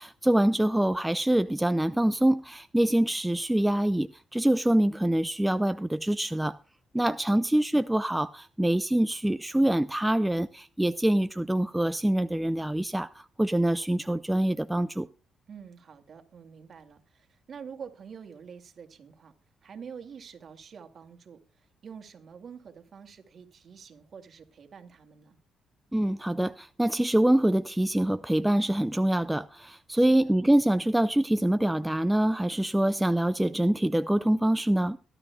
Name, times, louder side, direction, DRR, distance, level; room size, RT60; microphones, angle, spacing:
voice 1, 0.0-6.6 6.9-15.1 25.9-35.0, right 1 dB, 5° right, 0.5 m, -25 dB
voice 2, 6.9-7.4 15.5-19.3 19.6-25.4 29.9-30.3, right 6 dB, 50° right, 2.2 m, -47 dB
23.0 x 12.0 x 2.3 m
cardioid pair, 90°, 0 cm